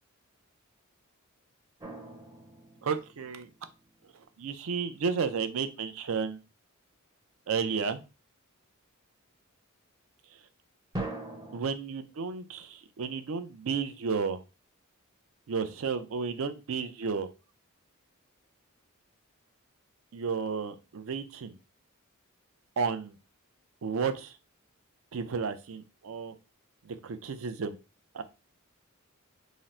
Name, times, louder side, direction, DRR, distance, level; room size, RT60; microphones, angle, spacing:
sound 1, 1.8-3.9 10.9-11.6, right 2 dB, 20° right, 0.6 m, -40 dB
voice 1, 2.8-3.5 4.4-6.4 7.5-8.0 11.5-14.4 15.5-17.3 20.1-21.6 22.8-23.2 23.8-24.4 25.1-26.3 26.8-27.8 28.1-28.2, right 5 dB, 70° right, 9 dB, 0.5 m, -32 dB
3.7 x 2.0 x 4.2 m, 0.30 s
head